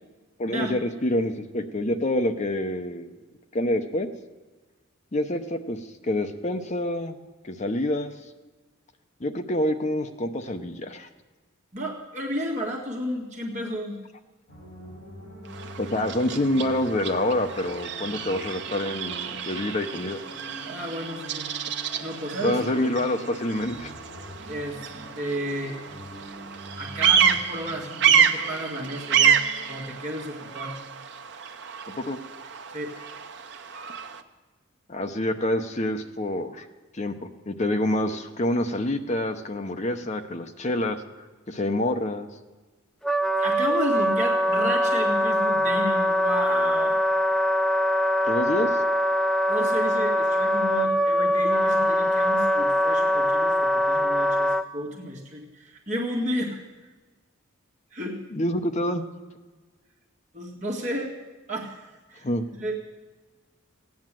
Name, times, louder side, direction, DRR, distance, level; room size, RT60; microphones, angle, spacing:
voice 1, 0.4-3.1 3.5-4.1 5.1-7.2 7.4-8.1 9.2-11.1 15.8-20.2 22.4-23.9 31.9-32.2 34.9-36.7 36.9-41.0 41.5-42.3 48.3-48.8 58.3-59.0 62.2-62.5, left 1 dB, 35° left, 7 dB, 0.7 m, -27 dB
voice 2, 11.7-14.0 20.6-21.4 22.0-22.6 24.5-24.9 25.2-25.8 26.8-29.4 29.7-30.8 32.7-32.9 43.4-47.0 49.5-56.9 57.9-58.2 60.3-61.2 61.5-62.8, equal, 35° right, -3 dB, 1.9 m, -32 dB
sound 1, 14.5-30.7, equal, 55° left, 6.0 m, -44 dB
Bird vocalization bird call bird song, 15.5-34.2, right 7 dB, 55° right, 0.8 m, -28 dB
Wind instrument woodwind instrument, 43.0-54.6, equal, ahead, 0.4 m, -23 dB
17.0 x 9.6 x 7.5 m, 1.3 s
head